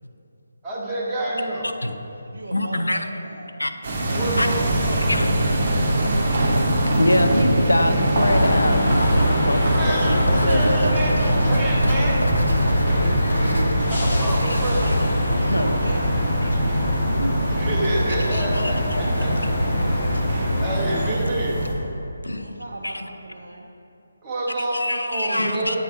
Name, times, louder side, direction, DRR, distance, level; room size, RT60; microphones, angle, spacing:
voice 1, 0.6-1.7 4.1-5.1 9.7-12.3 13.9-14.9 17.5-19.4 20.0-20.2 20.6-21.6 24.2-25.8, right 1 dB, 10° right, -6 dB, 0.8 m, -28 dB
voice 2, 1.6-1.9 2.5-3.1 3.6-3.7 4.0-4.1 4.4-4.5 5.1-5.4 7.0-11.7 12.1-12.2 12.9-13.8 14.4-14.6 14.9-15.0 15.3-15.8 16.4-17.5 18.2-18.7 21.2-21.3 22.2-22.5 22.8-23.1 24.6-25.8, left 1 dB, 75° left, 7 dB, 0.4 m, -26 dB
voice 3, 2.3-3.5 15.6-16.7 22.4-23.7, right 1 dB, 60° right, 0 dB, 0.4 m, -39 dB
sound 1, 3.8-21.7, right 1 dB, 35° right, 1.0 m, -24 dB
sound 2, 8.2-21.1, equal, 45° left, 1.2 m, -23 dB
Writing, 10.1-15.1, equal, 90° right, 0.7 m, -28 dB
8.1 x 3.4 x 4.4 m, 2.8 s
figure-of-eight pair, 150°, 0 cm